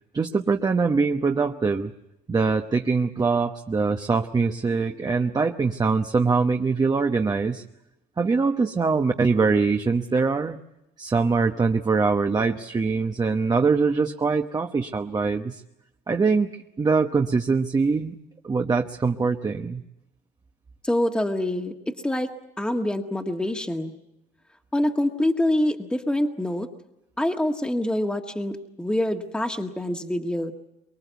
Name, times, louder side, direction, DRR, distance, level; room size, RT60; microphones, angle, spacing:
voice 1, 0.1-1.9 2.3-7.6 8.2-10.6 11.0-15.6 16.1-18.1 18.4-19.8, right 4 dB, 25° right, 4 dB, 1.1 m, -23 dB
voice 2, 20.8-22.3 22.6-23.9 24.7-26.7 27.2-30.5, left 1 dB, 5° left, 4 dB, 1.7 m, -25 dB
24.5 x 22.5 x 8.2 m, 0.89 s
cardioid pair, 110°, 17 cm